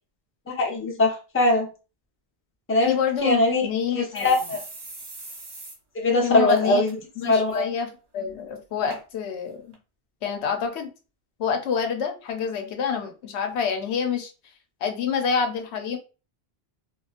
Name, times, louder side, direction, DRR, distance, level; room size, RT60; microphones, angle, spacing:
voice 1, 0.5-1.7 2.7-3.0 3.2-3.7 3.9-4.6 5.9-6.9 7.2-7.7, left 2 dB, 15° left, 0 dB, 0.5 m, -21 dB
voice 2, 2.9-4.3 6.2-6.8 7.2-9.7 10.2-10.9 11.4-14.3 14.8-16.0, left 7 dB, 85° left, 5 dB, 0.9 m, -27 dB
sound 1, 3.2-3.3 3.6-3.7 4.1-5.8 6.1-6.2 6.5-6.9 7.3-7.6 8.3-8.4 8.9-9.0 9.7-9.8, right 2 dB, 70° right, 1.1 m, -41 dB
2.8 x 2.4 x 2.4 m, 0.33 s
omnidirectional pair, 1.1 m